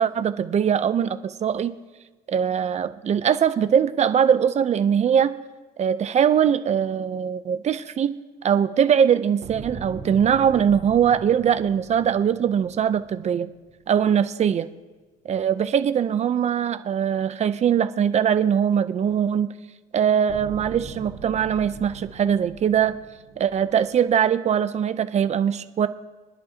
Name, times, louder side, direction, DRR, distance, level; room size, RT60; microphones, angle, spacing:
voice 1, 0.0-1.7 2.3-5.3 5.8-8.1 8.4-13.5 13.9-14.7 15.2-19.5 19.9-23.0 23.4-25.9, right 8 dB, 40° right, 12 dB, 0.6 m, -21 dB
sound 1, 9.4-13.7 20.3-24.0, right 4 dB, 80° right, 3.0 m, -41 dB
27.0 x 10.5 x 2.9 m, 1.3 s
cardioid pair, 110°, 17 cm